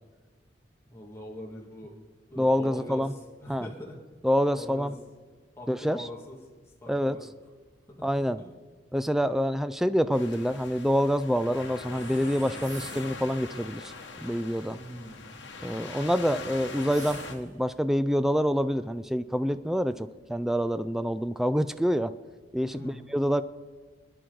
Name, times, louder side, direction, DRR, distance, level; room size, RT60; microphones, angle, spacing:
voice 1, 0.9-2.0 2.3-4.0 4.5-5.0 5.6-6.4 6.8-7.3 7.9-8.1 8.4-8.6 14.7-15.2 22.7-23.1, left 1 dB, 15° left, -3 dB, 1.9 m, -43 dB
voice 2, 2.4-3.1 3.5-3.7 4.2-4.9 5.7-6.1 6.9-7.2 8.0-8.4 8.9-13.9 14.2-14.8 15.6-22.1 22.5-23.4, equal, ahead, 12 dB, 0.4 m, -26 dB
sound 1, 10.1-17.3, left 3 dB, 75° left, 1.4 m, -42 dB
sound 2, 11.9-13.3 16.8-17.7, right 5 dB, 40° right, 1.6 m, -48 dB
27.5 x 10.0 x 3.9 m, 1.4 s
head